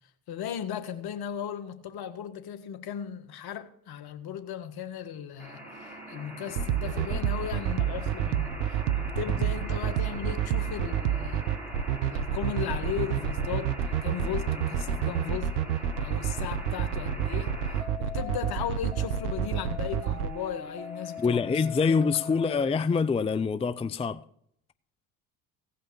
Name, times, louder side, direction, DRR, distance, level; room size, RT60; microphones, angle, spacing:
voice 1, 0.3-11.4 12.0-15.5 16.0-22.6, left 9 dB, 55° left, 1.6 m, -37 dB
sound 1, 5.4-22.6, left 1 dB, 5° right, 7.2 m, -42 dB
sound 2, 6.5-20.3, right 9 dB, 90° right, 0.9 m, -28 dB
voice 2, 21.2-24.2, left 5 dB, 15° left, 0.5 m, -25 dB
16.5 x 5.7 x 7.1 m
hypercardioid pair, 65°, 43 cm